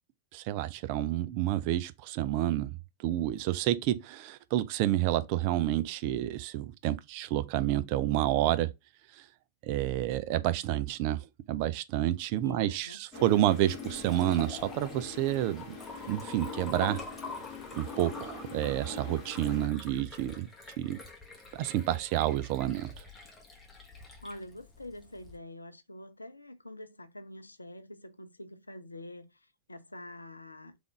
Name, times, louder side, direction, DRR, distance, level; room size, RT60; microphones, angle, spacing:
voice 1, 0.3-8.7 9.1-9.2 9.6-15.8 16.1-17.0 17.7-20.5 20.8-21.0 21.5-23.0, right 13 dB, 45° right, 0.4 m, -29 dB
voice 2, 12.4-13.6 24.2-30.8, left 1 dB, 80° left, 0.5 m, -46 dB
sound 1, 13.1-19.7, left 4 dB, 30° left, 1.8 m, -43 dB
Liquid, 13.3-25.4, left 3 dB, 15° left, 1.4 m, -47 dB
3.5 x 3.5 x 3.7 m
figure-of-eight pair, 90°, 0 cm